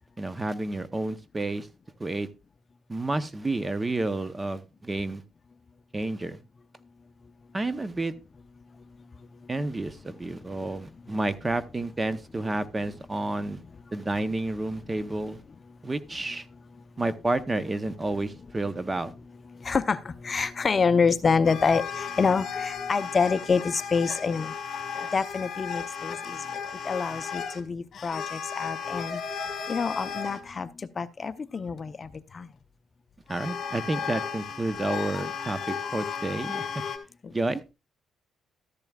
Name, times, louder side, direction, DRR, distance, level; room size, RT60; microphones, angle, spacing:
voice 1, 0.2-1.7 2.0-2.3 2.9-5.2 5.9-6.4 7.5-8.1 9.5-13.6 13.9-15.4 15.8-16.5 17.0-19.1 33.3-36.8 37.3-37.6, right 2 dB, 20° right, 0.8 m, -30 dB
voice 2, 19.6-24.5 25.1-26.4 26.8-29.2 29.7-30.7 31.0-32.1 32.3-32.5, left 5 dB, 35° left, 0.6 m, -26 dB
sound 1, 21.4-30.4 31.8-32.3 33.3-37.0, left 7 dB, 55° left, 1.9 m, -34 dB
13.5 x 10.5 x 2.3 m
cardioid pair, 90°, 0 cm